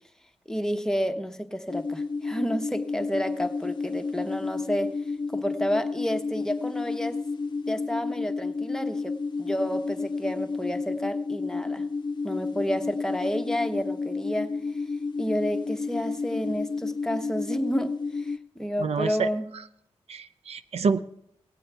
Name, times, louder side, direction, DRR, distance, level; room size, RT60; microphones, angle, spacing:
voice 1, 0.5-4.9 5.3-7.2 7.7-11.8 12.2-14.6 15.2-19.5, equal, 5° left, 6 dB, 0.9 m, -30 dB
sound 1, 1.7-18.4, left 4 dB, 40° left, 0.6 m, -31 dB
voice 2, 18.8-19.3 20.1-21.0, right 5 dB, 70° right, 11 dB, 0.5 m, -27 dB
18.0 x 8.6 x 3.4 m, 0.76 s
wide cardioid pair, 90°, 11 cm